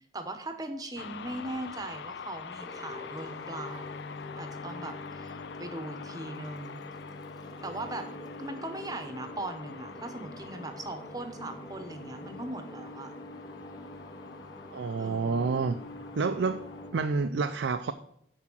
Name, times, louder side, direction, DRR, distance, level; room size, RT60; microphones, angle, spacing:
voice 1, 0.1-3.9 4.4-6.8 7.6-8.1 8.4-13.1 15.0-15.6, right 2 dB, 20° right, 7 dB, 0.9 m, -39 dB
sound 1, 1.0-16.9, left 6 dB, 70° left, 0.4 m, -46 dB
sound 2, 2.6-17.3, left 1 dB, 20° left, 0.8 m, -45 dB
voice 2, 14.7-15.7 16.1-16.6 16.9-17.9, right 4 dB, 85° right, 8 dB, 0.4 m, -28 dB
9.9 x 4.7 x 6.1 m, 0.73 s
head